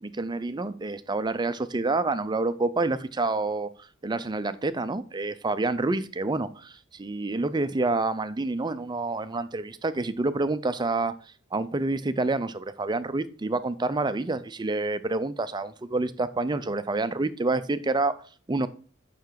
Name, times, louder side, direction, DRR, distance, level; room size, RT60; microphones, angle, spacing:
voice 1, 0.0-3.7 4.0-11.1 11.5-18.1 18.5-18.7, right 3 dB, 20° right, 0.5 m, -28 dB
7.0 x 5.9 x 4.6 m
head